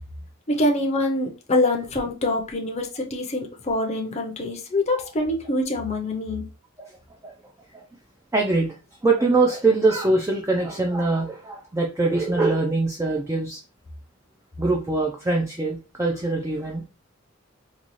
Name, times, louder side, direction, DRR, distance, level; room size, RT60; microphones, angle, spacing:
voice 1, 0.5-6.5, left 1 dB, 30° left, 1 dB, 0.6 m, -25 dB
voice 2, 8.3-8.7 9.0-13.6 14.6-16.8, right 3 dB, 15° right, 0 dB, 0.4 m, -23 dB
4.0 x 2.3 x 3.0 m, 0.32 s
head